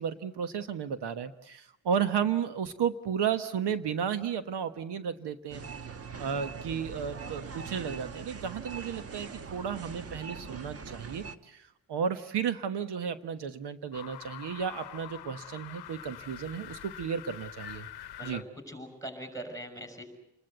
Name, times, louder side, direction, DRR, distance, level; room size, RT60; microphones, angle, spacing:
voice 1, 0.0-5.6 6.2-17.9 18.2-18.4, right 7 dB, 65° right, 10 dB, 1.3 m, -33 dB
sound 1, 5.5-11.3, right 5 dB, 35° right, 1.2 m, -42 dB
sound 2, 13.9-18.4, left 12 dB, 60° left, 1.0 m, -45 dB
voice 2, 18.2-20.0, right 1 dB, 5° left, 7 dB, 6.2 m, -41 dB
29.0 x 21.0 x 8.0 m, 0.78 s
cardioid pair, 145°, 44 cm